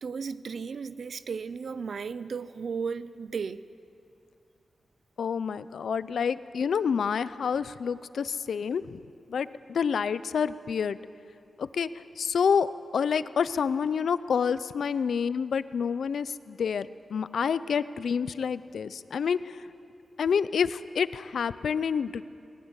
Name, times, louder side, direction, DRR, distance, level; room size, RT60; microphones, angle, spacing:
voice 1, 0.0-3.6, right 5 dB, 70° right, 16 dB, 0.6 m, -35 dB
voice 2, 5.2-9.0 9.3-11.0 11.6-11.9 12.2-19.6 20.2-22.2, left 6 dB, 90° left, 15 dB, 0.5 m, -28 dB
20.0 x 19.0 x 8.1 m, 2.6 s
wide cardioid pair, 100°, 0 cm